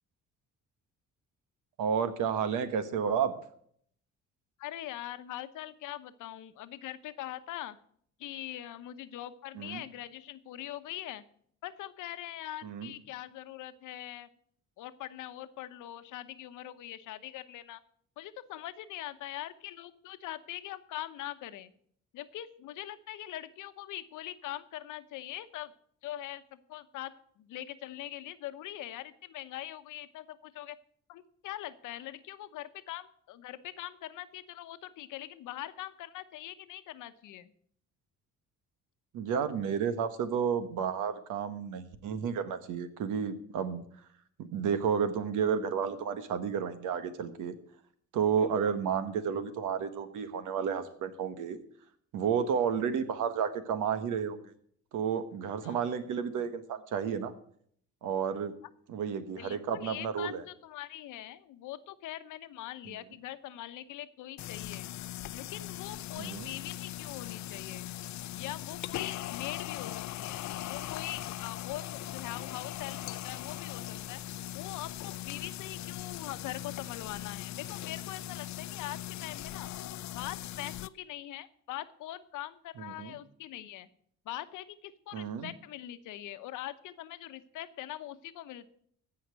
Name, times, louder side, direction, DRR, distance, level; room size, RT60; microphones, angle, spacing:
voice 1, 1.8-3.3 9.5-9.8 12.6-12.9 39.1-43.8 44.4-47.5 48.1-51.6 52.1-54.5 54.9-57.3 58.0-58.5 58.9-60.4 62.9-63.0 66.2-66.5 82.8-83.2 85.1-85.5, right 7 dB, 85° right, 11 dB, 1.4 m, -31 dB
voice 2, 4.6-7.8 8.2-11.2 11.6-14.3 14.8-17.8 18.2-21.7 22.1-25.7 26.0-30.8 31.1-37.5 55.6-55.8 59.4-64.9 65.3-67.9 68.3-74.2 74.5-79.7 80.1-83.9 84.2-88.7, left 13 dB, 90° left, 12 dB, 1.0 m, -42 dB
sound 1, 64.4-80.9, left 14 dB, 70° left, 0.5 m, -40 dB
15.0 x 5.8 x 8.1 m, 0.63 s
cardioid pair, 90°, 30 cm